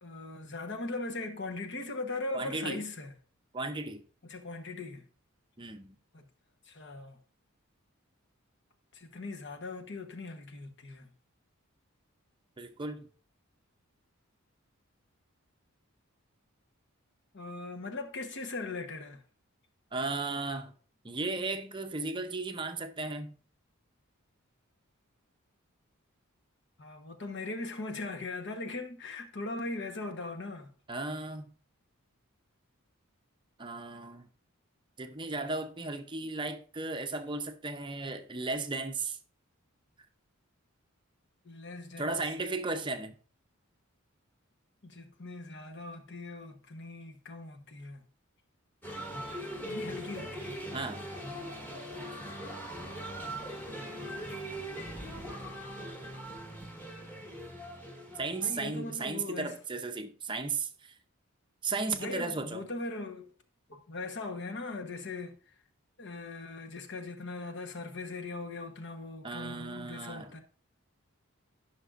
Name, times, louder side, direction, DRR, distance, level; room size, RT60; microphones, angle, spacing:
voice 1, 0.0-3.1 4.2-5.0 6.1-6.3 6.7-7.2 8.9-11.1 17.3-19.2 26.8-30.7 41.4-42.2 44.8-48.0 49.6-50.6 52.8-53.4 58.4-59.5 62.0-63.3 63.7-65.4 66.0-70.4, left 3 dB, 55° left, 1.1 m, -40 dB
voice 2, 2.3-2.8 3.5-4.0 5.6-6.0 12.6-13.1 19.9-20.7 21.0-23.3 30.9-31.5 33.6-34.3 35.0-39.2 42.0-43.1 50.7-51.1 58.2-61.0 61.6-62.7 69.2-70.4, right 3 dB, 20° right, 0.6 m, -35 dB
sound 1, 48.8-59.2, right 1 dB, 10° left, 1.5 m, -41 dB
14.5 x 5.9 x 2.5 m
head